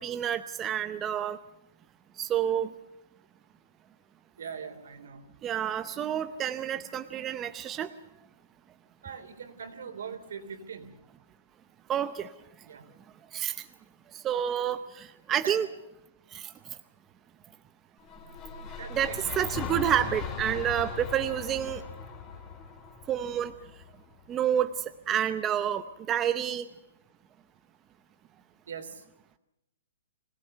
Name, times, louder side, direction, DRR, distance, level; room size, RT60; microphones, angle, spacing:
voice 1, 0.0-1.4 2.2-2.7 5.4-7.9 11.9-12.3 13.3-13.6 14.1-15.7 16.3-16.5 18.9-21.8 23.1-23.5 24.3-24.7 25.1-26.7, right 10 dB, 15° right, 10 dB, 0.7 m, -29 dB
voice 2, 4.4-5.3 9.0-10.9 12.6-12.9 15.4-15.6 18.8-19.2 28.7-29.0, right 6 dB, 75° right, 8 dB, 3.4 m, -41 dB
sound 1, 18.0-24.2, left 6 dB, 20° left, 3.2 m, -39 dB
25.0 x 17.5 x 6.7 m, 0.87 s
hypercardioid pair, 165°, 0 cm